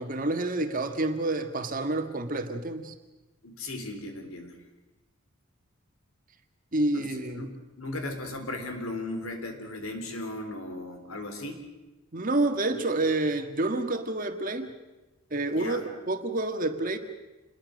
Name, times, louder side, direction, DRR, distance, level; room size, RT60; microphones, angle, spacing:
voice 1, 0.0-2.9 6.7-7.5 12.1-14.7 15.3-17.0, right 2 dB, 40° right, 6 dB, 1.7 m, -28 dB
voice 2, 3.4-4.6 6.9-11.6 15.5-15.9, left 2 dB, 80° left, 6 dB, 3.8 m, -37 dB
27.5 x 21.5 x 6.5 m, 1.1 s
head